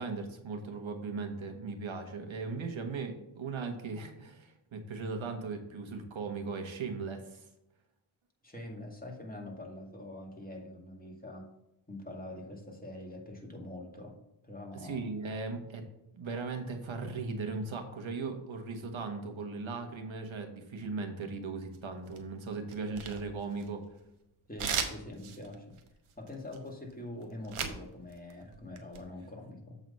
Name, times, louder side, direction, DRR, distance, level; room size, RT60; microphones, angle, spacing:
voice 1, 0.0-7.5 14.7-15.8 16.1-23.8, right 4 dB, 70° right, 5 dB, 1.5 m, -38 dB
voice 2, 8.4-11.5 11.9-15.1 24.5-25.8 26.2-29.8, left 1 dB, 15° left, 0 dB, 2.1 m, -44 dB
sound 1, 21.7-22.3 22.7-24.0 24.6-27.8 28.1-29.0, right 7 dB, 85° right, 1.0 m, -37 dB
7.7 x 4.0 x 5.4 m, 0.88 s
cardioid pair, 60°, 49 cm